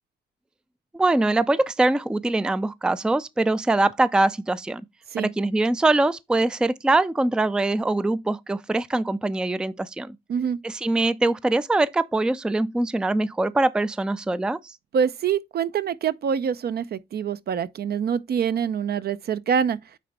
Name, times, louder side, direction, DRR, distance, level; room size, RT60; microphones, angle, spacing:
voice 1, 0.9-4.8 5.2-10.2 10.6-14.7, right 2 dB, 5° right, 0.4 m, -23 dB
voice 2, 14.9-19.8, right 7 dB, 55° right, 0.6 m, -25 dB
9.2 x 3.4 x 4.2 m
cardioid pair, 90°, 20 cm